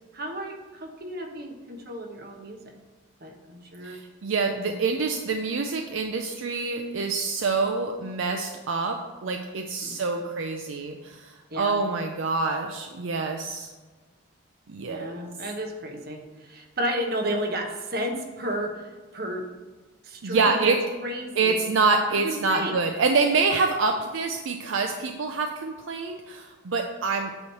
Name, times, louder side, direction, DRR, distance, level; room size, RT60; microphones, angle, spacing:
voice 1, 0.1-2.6 3.2-4.0 4.5-4.8 9.8-10.3 11.5-11.8 14.9-19.5 20.0-20.8 21.0-21.6 22.1-22.8, equal, 50° right, 2 dB, 1.0 m, -33 dB
voice 2, 3.8-8.9 9.2-13.7 14.7-15.2 20.2-20.8 21.4-27.3, right 4 dB, 70° right, 4 dB, 0.5 m, -26 dB
8.5 x 3.1 x 6.5 m, 1.3 s
head